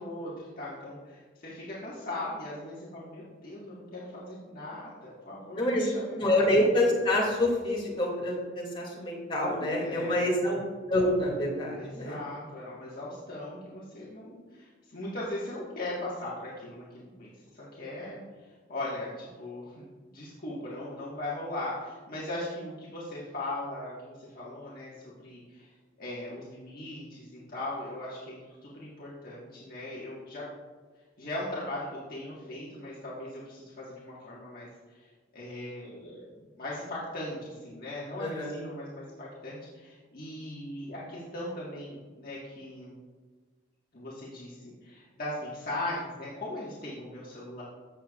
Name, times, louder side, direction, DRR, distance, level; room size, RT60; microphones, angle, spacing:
voice 1, 0.0-6.5 9.8-10.5 11.8-18.2 18.7-25.7 26.0-30.5 31.2-35.1 35.3-42.9 43.9-47.6, left 1 dB, 50° left, -7 dB, 1.6 m, -39 dB
voice 2, 6.2-10.6 10.9-12.2 38.2-38.6, left 1 dB, 25° left, -4 dB, 2.6 m, -27 dB
15.0 x 6.8 x 2.4 m, 1.4 s
head